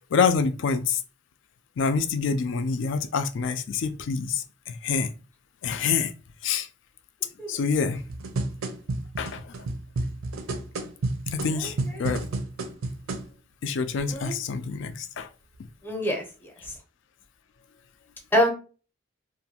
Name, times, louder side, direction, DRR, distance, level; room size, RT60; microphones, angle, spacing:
voice 1, 0.1-1.0 1.8-5.1 5.6-6.1 6.4-6.7 7.5-8.0 9.2-9.5 11.3-12.3 13.6-15.3, left 5 dB, 60° left, 0.3 m, -26 dB
sound 1, 7.9-13.3 14.0-14.1, right 2 dB, 85° right, 0.5 m, -31 dB
voice 2, 11.5-12.0 14.1-14.3 15.8-16.2 16.6-16.7 18.3-18.5, equal, 10° left, 0.6 m, -26 dB
2.6 x 2.3 x 2.8 m
head